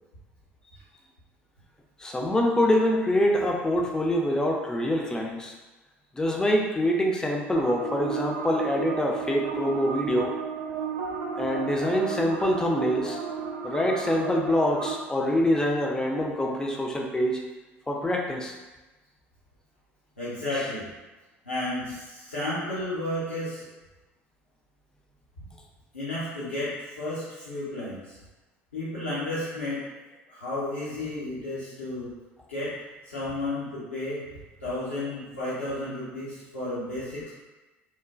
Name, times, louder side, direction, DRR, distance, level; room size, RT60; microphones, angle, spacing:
voice 1, 2.0-5.5 6.1-10.3 11.4-13.2 13.6-17.4 17.9-18.5, left 1 dB, 10° left, 0 dB, 0.4 m, -25 dB
sound 1, 7.5-14.9, right 6 dB, 55° right, 0.4 m, -33 dB
voice 2, 20.2-20.9 21.4-23.7 25.9-28.2 28.7-29.8 30.3-32.1 32.5-32.7 33.0-34.2 34.6-37.3, left 1 dB, 80° left, -12 dB, 0.7 m, -32 dB
3.0 x 2.1 x 2.4 m, 1.1 s
figure-of-eight pair, 60°, 7 cm